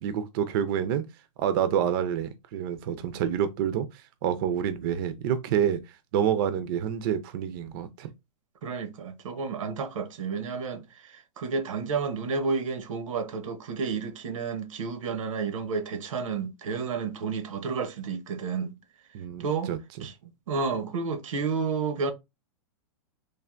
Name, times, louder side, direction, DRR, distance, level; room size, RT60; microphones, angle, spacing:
voice 1, 0.0-1.0 1.4-5.8 6.1-8.1 19.1-20.1, right 9 dB, 45° right, 0.4 m, -28 dB
voice 2, 8.6-18.8 19.4-19.7 20.0-20.1 20.5-22.1, right 5 dB, 90° right, 0.7 m, -31 dB
3.3 x 2.4 x 2.4 m
supercardioid pair, 150°, 16 cm